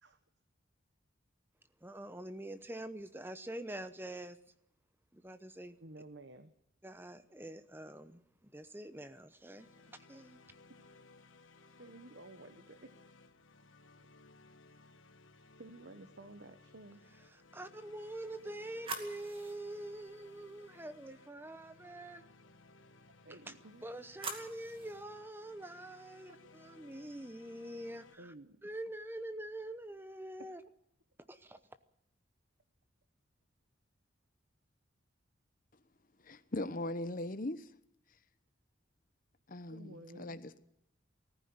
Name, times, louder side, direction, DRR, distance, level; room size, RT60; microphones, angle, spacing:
voice 1, 1.8-4.4 5.1-5.8 6.8-10.4 17.5-22.2 23.8-28.2 28.6-30.6 31.3-31.6, right 1 dB, 10° right, 0.9 m, -45 dB
voice 2, 5.8-6.5 11.8-12.9 14.0-14.1 15.6-17.0 18.4-19.1 21.8-21.9 23.2-23.8 26.3-26.5 28.1-28.6 30.4-30.6 39.7-40.4, right 2 dB, 60° right, 1.1 m, -53 dB
sound 1, 9.5-28.2, left 3 dB, 80° left, 1.5 m, -61 dB
sound 2, 18.0-21.1 23.5-25.0, right 3 dB, 25° right, 2.3 m, -47 dB
voice 3, 36.2-37.7 39.5-40.6, left 1 dB, 45° left, 1.0 m, -39 dB
19.5 x 14.5 x 9.6 m
head